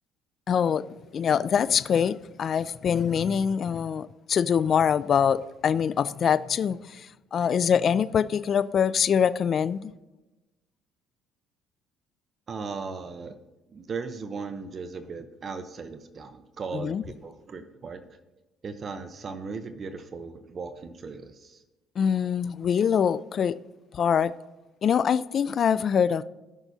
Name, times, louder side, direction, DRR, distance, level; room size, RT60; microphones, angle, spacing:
voice 1, 0.5-0.8 1.1-9.9 16.7-17.0 22.0-23.6 23.9-24.3 24.8-26.2, left 7 dB, 45° left, 0.3 m, -24 dB
voice 2, 12.5-13.4 13.7-18.0 18.6-21.6, right 4 dB, 35° right, 0.7 m, -37 dB
17.5 x 6.0 x 2.7 m
cardioid pair, 115°, 0 cm